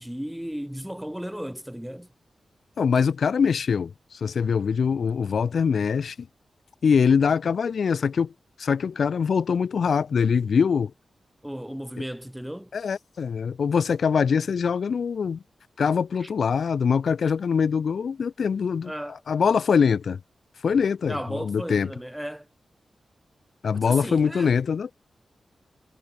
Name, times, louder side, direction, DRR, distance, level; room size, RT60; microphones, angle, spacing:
voice 1, 0.0-2.1 11.4-12.7 16.2-16.3 18.8-19.2 21.1-22.5 23.7-24.5, equal, 5° right, 0.7 m, -35 dB
voice 2, 2.8-6.3 6.8-8.3 8.6-10.9 12.7-15.4 15.8-18.9 19.3-20.2 20.6-21.9 23.6-24.9, left 6 dB, 70° left, 0.5 m, -23 dB
wide cardioid pair, 110°, 0 cm